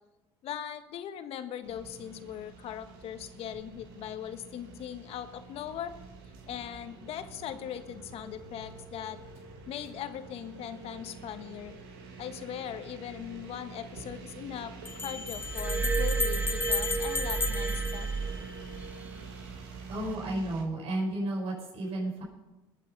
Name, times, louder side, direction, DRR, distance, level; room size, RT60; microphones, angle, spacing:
voice 1, 0.4-5.9 6.5-9.2 9.7-11.7 12.2-18.1, left 10 dB, 60° left, 9 dB, 1.4 m, -40 dB
sound 1, 1.6-20.6, right 4 dB, 85° right, 2.5 m, -46 dB
sound 2, 13.2-13.3 14.8-18.8, left 4 dB, 20° left, 0.9 m, -34 dB
Glass, 15.4-19.0 19.9-20.1, right 4 dB, 15° right, 0.4 m, -32 dB
voice 2, 19.9-22.2, right 1 dB, 60° right, -2 dB, 5.3 m, -32 dB
21.0 x 7.5 x 5.5 m, 1.1 s
supercardioid pair, 85°, 12 cm